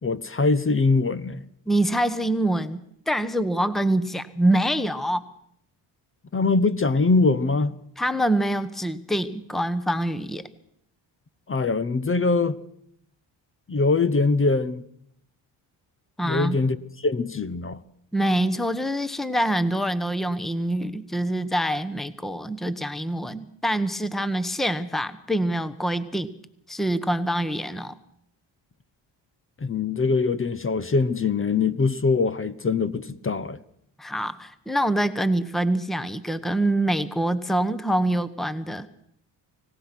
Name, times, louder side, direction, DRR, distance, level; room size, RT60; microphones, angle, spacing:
voice 1, 0.0-1.4 6.3-7.8 11.5-12.6 13.7-14.8 16.2-16.8 17.0-17.8 29.6-33.6, left 3 dB, 25° left, 0.9 m, -22 dB
voice 2, 1.7-5.2 8.0-10.5 16.2-16.6 18.1-26.3 26.7-28.0 34.0-38.9, right 1 dB, ahead, 1.2 m, -25 dB
25.0 x 17.5 x 6.1 m
cardioid pair, 75°, 47 cm